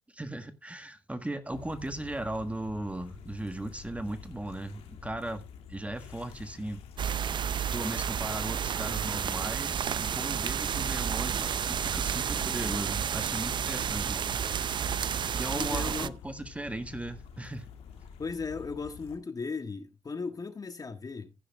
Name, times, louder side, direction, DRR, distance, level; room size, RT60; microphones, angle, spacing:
voice 1, 0.1-5.4 5.7-7.3 7.7-14.7 15.3-17.7, right 1 dB, 15° right, 1.5 m, -37 dB
sound 1, 1.5-19.2, left 7 dB, 75° left, 2.2 m, -48 dB
sound 2, 5.0-19.2, left 6 dB, 60° left, 3.2 m, -62 dB
sound 3, 7.0-16.1, right 8 dB, 50° right, 0.5 m, -31 dB
voice 2, 15.5-16.1 18.2-21.3, left 4 dB, 35° left, 1.6 m, -36 dB
15.5 x 10.0 x 2.3 m
supercardioid pair, 60°, 10 cm